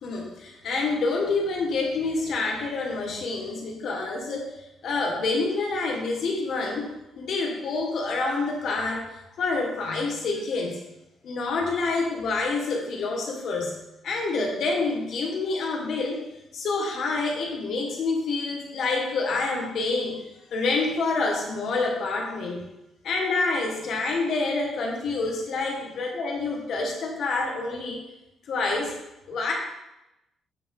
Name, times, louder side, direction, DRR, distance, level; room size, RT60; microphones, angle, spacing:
voice 1, 0.0-4.6 4.8-6.9 7.2-10.8 11.2-13.8 14.0-16.2 16.5-20.2 20.5-22.6 23.0-28.0 28.5-28.9 29.3-29.5, left 3 dB, 65° left, 0 dB, 1.7 m, -27 dB
8.3 x 5.5 x 3.6 m, 0.93 s
cardioid pair, 90°, 0 cm